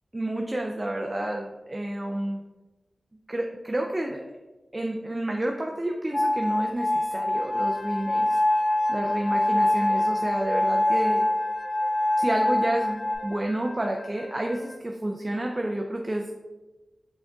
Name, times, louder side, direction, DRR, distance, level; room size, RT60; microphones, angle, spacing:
voice 1, 0.1-2.4 3.3-4.3 4.7-8.4 8.9-11.2 12.2-16.3, right 1 dB, 25° right, 1 dB, 0.4 m, -30 dB
sound 1, 6.1-13.2, left 1 dB, 50° left, 0.9 m, -24 dB
Wind instrument woodwind instrument, 7.3-14.9, left 2 dB, 85° left, 0.4 m, -46 dB
6.0 x 3.8 x 2.3 m, 1.1 s
wide cardioid pair, 80°, 0 cm